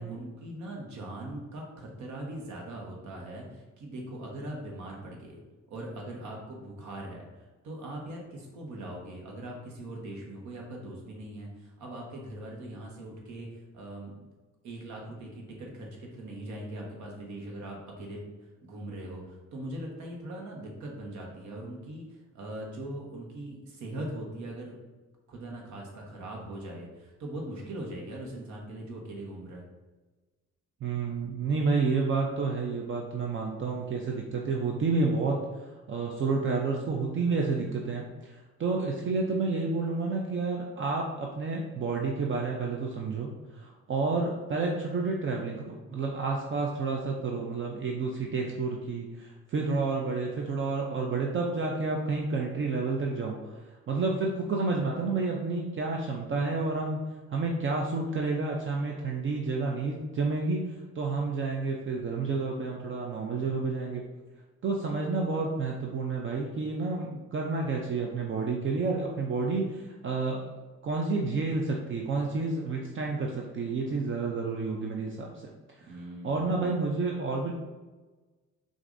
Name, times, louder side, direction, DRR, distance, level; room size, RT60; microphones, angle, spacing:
voice 1, 0.0-5.4 5.7-7.3 7.6-14.3 14.6-18.2 18.6-24.7 25.3-29.6 75.9-76.8, right 1 dB, 75° right, -1 dB, 1.2 m, -41 dB
voice 2, 30.8-35.4 35.9-53.6 53.9-57.0 57.3-64.0 64.6-70.4 70.8-75.3 75.8-75.9 76.2-77.5, right 3 dB, 45° right, 0 dB, 0.5 m, -30 dB
6.1 x 2.6 x 2.6 m, 1.2 s
cardioid pair, 135°, 29 cm